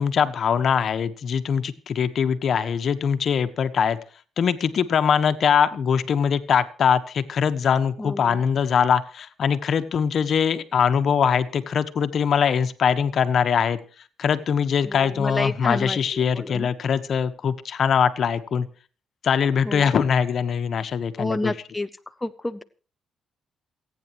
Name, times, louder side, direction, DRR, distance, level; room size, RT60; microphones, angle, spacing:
voice 1, 0.0-4.0 4.4-13.8 14.2-18.7 19.2-21.5, left 7 dB, 55° left, 10 dB, 1.3 m, -22 dB
voice 2, 8.0-8.4 14.8-16.7 19.6-19.9 21.2-21.9 22.2-22.6, left 2 dB, 15° left, 10 dB, 0.7 m, -29 dB
28.0 x 9.5 x 3.2 m, 0.38 s
cardioid pair, 90°, 0 cm